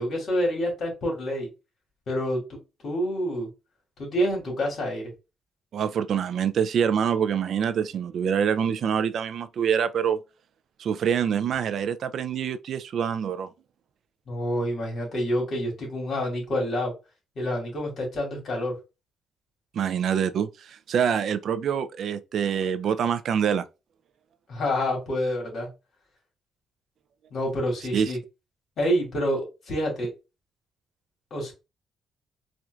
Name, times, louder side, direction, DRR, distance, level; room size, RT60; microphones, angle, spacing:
voice 1, 0.0-1.5 2.1-3.5 4.0-5.1 14.3-16.9 17.4-18.8 24.5-25.7 27.3-28.2 28.8-30.1 31.3-31.5, equal, 60° left, 2.1 m, -27 dB
voice 2, 5.7-10.2 10.8-13.5 19.7-23.7 27.9-28.1, right 8 dB, 65° right, 0.3 m, -25 dB
4.3 x 2.5 x 2.3 m
cardioid pair, 90°, 0 cm